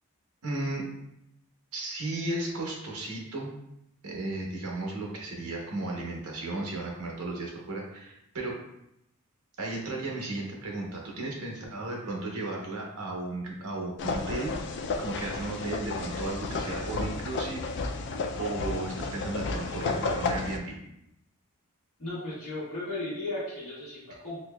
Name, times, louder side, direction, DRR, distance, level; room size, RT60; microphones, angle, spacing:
voice 1, 0.4-0.8 1.7-3.5 4.0-8.6 9.6-17.6 18.4-20.7, right 2 dB, 70° right, -1 dB, 0.9 m, -35 dB
sound 1, 14.0-20.6, left 3 dB, 50° left, 0.3 m, -32 dB
voice 2, 22.0-24.4, left 2 dB, 70° left, -11 dB, 1.5 m, -35 dB
4.1 x 2.8 x 2.2 m, 0.81 s
head